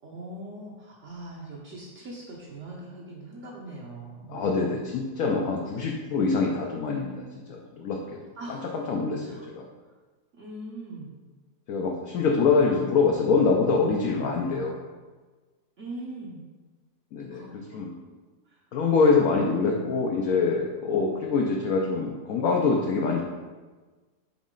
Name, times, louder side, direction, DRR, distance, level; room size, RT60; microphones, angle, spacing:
voice 1, 0.0-4.7 8.4-8.7 9.2-9.5 10.4-11.2 15.8-16.4 17.3-17.8 18.5-18.6, right 1 dB, 50° right, -4 dB, 1.1 m, -41 dB
voice 2, 4.3-7.2 7.5-8.2 8.5-9.6 11.7-14.7 17.1-17.9 18.7-23.2, left 4 dB, 65° left, -1 dB, 1.0 m, -25 dB
7.3 x 4.1 x 3.8 m, 1.3 s
omnidirectional pair, 1.9 m